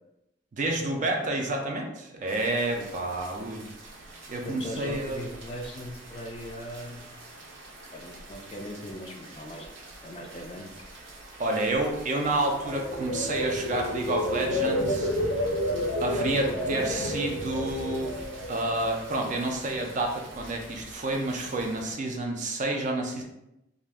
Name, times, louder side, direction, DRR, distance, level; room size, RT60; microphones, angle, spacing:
voice 1, 0.5-3.6 4.3-5.2 11.4-15.1 16.0-18.2 18.5-23.2, right 2 dB, 40° right, 2 dB, 0.4 m, -29 dB
sound 1, 2.3-21.9, right 2 dB, 80° right, 0.6 m, -47 dB
voice 2, 4.4-7.1 7.9-9.7 10.0-10.7, left 1 dB, 30° left, 2 dB, 0.3 m, -39 dB
sound 2, 12.1-19.2 19.6-20.0, left 1 dB, 90° left, 0.5 m, -30 dB
2.4 x 2.1 x 3.4 m, 0.89 s
head